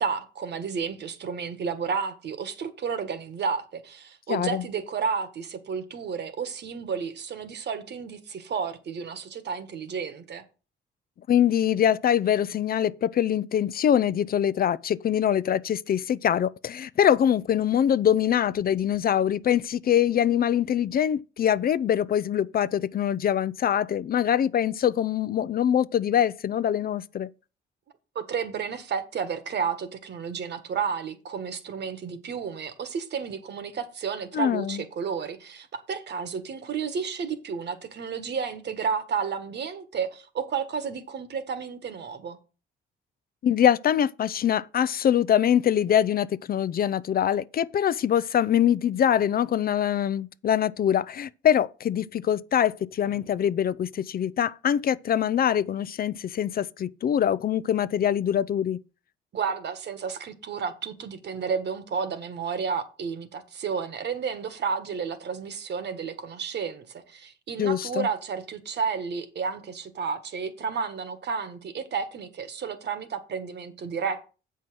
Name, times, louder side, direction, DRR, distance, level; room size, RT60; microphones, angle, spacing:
voice 1, 0.0-10.4 28.1-42.4 59.3-74.2, right 6 dB, 60° right, 1.5 m, -31 dB
voice 2, 4.3-4.6 11.3-27.3 34.3-34.8 43.4-58.8 67.6-68.1, left 9 dB, 50° left, 0.5 m, -24 dB
7.6 x 5.6 x 6.2 m
cardioid pair, 90°, 20 cm